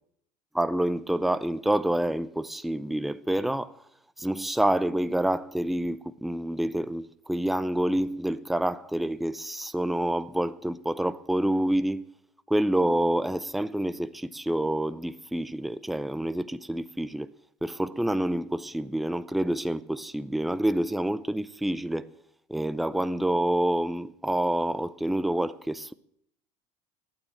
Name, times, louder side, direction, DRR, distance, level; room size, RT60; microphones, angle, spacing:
voice 1, 0.5-3.7 4.2-12.0 12.5-17.3 17.6-22.1 22.5-25.9, right 1 dB, ahead, 0.5 m, -27 dB
11.5 x 8.9 x 8.8 m
supercardioid pair, 95°, 20 cm